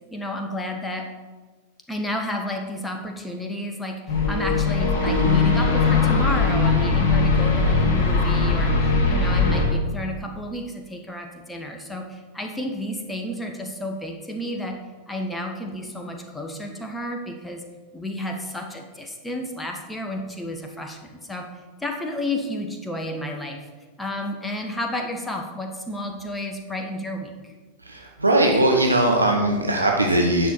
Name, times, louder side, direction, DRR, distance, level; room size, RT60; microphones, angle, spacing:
voice 1, 0.1-1.1 1.9-14.8 15.1-17.7 17.9-21.5 21.8-23.7 24.0-27.5, left 1 dB, 5° left, 3 dB, 1.1 m, -31 dB
sound 1, 4.1-9.6, left 4 dB, 45° left, 2.3 m, -20 dB
voice 2, 27.9-30.5, right 1 dB, 80° right, 1 dB, 0.8 m, -20 dB
9.4 x 6.4 x 4.4 m, 1.3 s
figure-of-eight pair, 90°, 0 cm